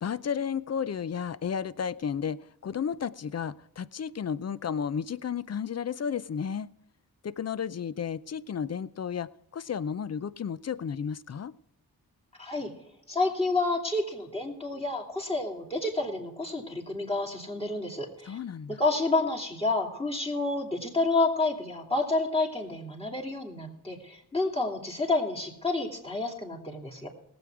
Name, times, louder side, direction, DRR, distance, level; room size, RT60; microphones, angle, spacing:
voice 1, 0.0-6.7 7.2-11.5 18.3-18.8, left 7 dB, 40° left, 17 dB, 0.5 m, -33 dB
voice 2, 12.4-12.7 13.1-18.4 18.7-27.1, left 2 dB, 15° left, -2 dB, 2.8 m, -29 dB
18.5 x 7.9 x 4.7 m, 0.80 s
cardioid pair, 75°, 38 cm